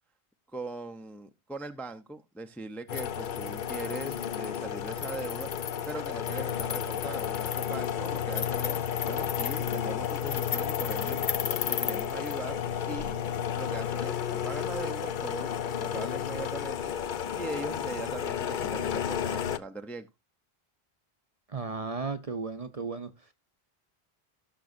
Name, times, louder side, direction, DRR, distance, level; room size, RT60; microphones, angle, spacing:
voice 1, 0.5-5.5 5.9-11.2 11.7-12.6 12.9-13.2 13.6-16.9 17.3-20.1, right 2 dB, ahead, 0.5 m, -40 dB
sound 1, 2.9-19.6, left 8 dB, 55° left, 0.7 m, -32 dB
voice 2, 21.5-23.1, right 4 dB, 40° right, 0.7 m, -34 dB
16.5 x 6.1 x 2.6 m
omnidirectional pair, 1.1 m